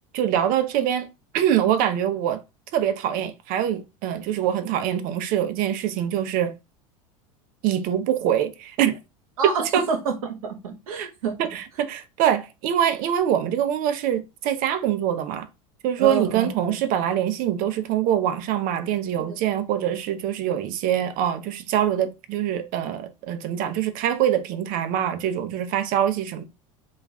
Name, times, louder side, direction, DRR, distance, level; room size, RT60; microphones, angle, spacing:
voice 1, 0.1-1.1 1.3-2.4 2.7-6.5 7.6-9.0 9.4-9.9 11.0-11.1 11.4-15.5 15.8-26.4, right 10 dB, 55° right, 0.6 m, -24 dB
voice 2, 9.4-11.4 16.0-16.7 19.2-19.4, right 5 dB, 90° right, 0.9 m, -28 dB
3.0 x 2.4 x 3.5 m
hypercardioid pair, 100°, 18 cm